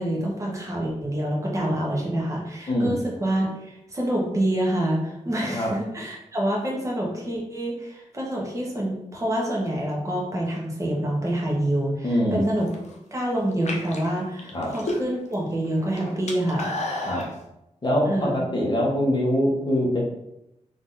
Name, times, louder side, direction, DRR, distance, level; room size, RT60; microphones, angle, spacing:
voice 1, 0.0-12.7 13.1-16.7 18.1-18.3, right 1 dB, 25° right, -3 dB, 1.2 m, -27 dB
voice 2, 2.7-3.0 5.5-5.7 12.0-12.5 14.5-14.7 17.0-17.2 17.8-20.0, equal, 35° left, -4 dB, 1.5 m, -23 dB
sound 1, 12.5-12.9 13.5-15.3 15.6-17.3, left 1 dB, 65° left, 0.8 m, -31 dB
3.9 x 2.9 x 4.0 m, 0.85 s
wide cardioid pair, 95°, 13 cm